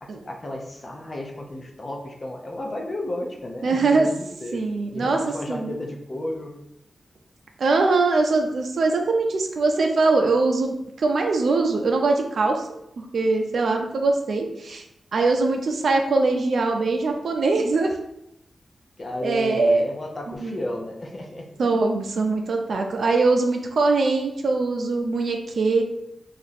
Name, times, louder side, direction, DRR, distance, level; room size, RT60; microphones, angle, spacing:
voice 1, 0.0-4.6 4.9-6.6 19.0-21.8, left 1 dB, 35° left, 1 dB, 0.5 m, -33 dB
voice 2, 3.6-4.1 4.5-5.2 5.5-5.8 7.6-12.7 13.0-14.8 15.1-17.9 19.2-19.9 20.4-20.6 21.6-25.8, right 3 dB, 65° right, 3 dB, 0.5 m, -22 dB
2.9 x 2.5 x 4.1 m, 0.80 s
wide cardioid pair, 175°, 0 cm